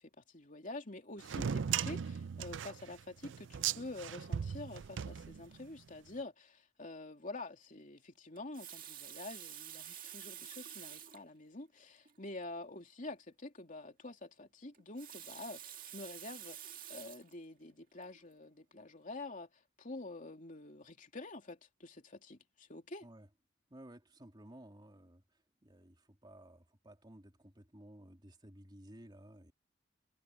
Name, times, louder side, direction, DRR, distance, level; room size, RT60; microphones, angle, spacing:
voice 1, 0.0-23.0, left 2 dB, 40° left, 2.9 m, -47 dB
sound 1, 1.2-5.8, right 8 dB, 65° right, 0.4 m, -38 dB
Water tap faucet, 8.4-11.3 12.1-12.2 12.4-12.5 14.7-17.3 18.0-18.2, right 11 dB, 45° right, 2.1 m, -49 dB
voice 2, 23.7-29.5, right 1 dB, 20° right, 2.9 m, -56 dB
head